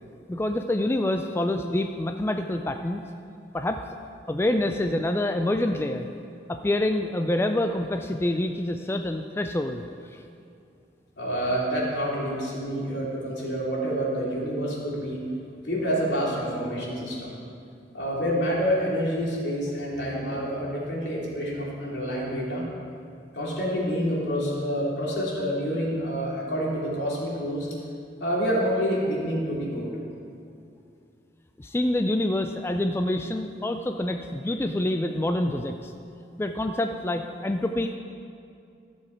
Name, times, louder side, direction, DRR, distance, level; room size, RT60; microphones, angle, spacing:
voice 1, 0.3-3.0 3.5-3.8 4.3-6.1 6.5-9.8 10.1-10.2 31.6-35.9 36.4-38.0, left 1 dB, 15° left, 6 dB, 0.3 m, -26 dB
voice 2, 11.2-15.2 15.6-17.3 17.9-22.7 23.3-27.7 28.2-29.9, equal, 75° left, -5 dB, 2.9 m, -28 dB
14.5 x 7.0 x 4.5 m, 2.5 s
head